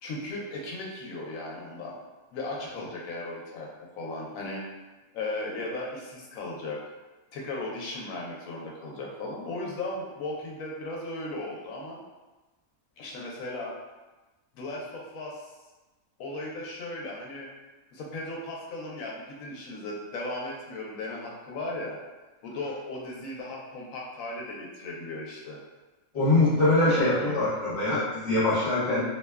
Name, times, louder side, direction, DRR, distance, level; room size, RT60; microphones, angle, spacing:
voice 1, 0.0-2.0 2.3-3.7 3.9-4.6 5.1-6.8 7.3-12.0 13.0-13.7 14.5-15.4 16.2-17.5 17.9-22.0 22.4-25.6 26.9-27.4, left 2 dB, 90° left, -3 dB, 1.0 m, -36 dB
voice 2, 26.1-29.0, left 2 dB, 55° left, -10 dB, 1.1 m, -23 dB
2.8 x 2.1 x 2.2 m, 1.1 s
omnidirectional pair, 1.4 m